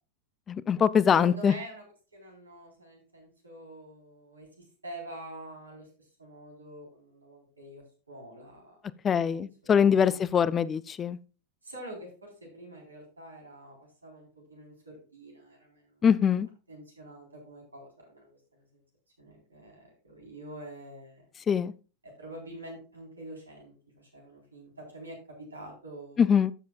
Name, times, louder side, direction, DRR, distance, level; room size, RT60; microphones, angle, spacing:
voice 1, 0.5-1.5 9.0-11.2 16.0-16.5 21.5-21.7 26.2-26.5, left 7 dB, 20° left, 20 dB, 0.3 m, -23 dB
voice 2, 1.1-1.8 2.1-8.8 9.2-10.2 11.6-13.8 14.0-16.0 16.7-18.8 19.2-21.3 22.0-26.3, right 1 dB, 80° right, 0 dB, 3.8 m, -46 dB
13.5 x 7.3 x 2.3 m, 0.34 s
figure-of-eight pair, 90°, 0 cm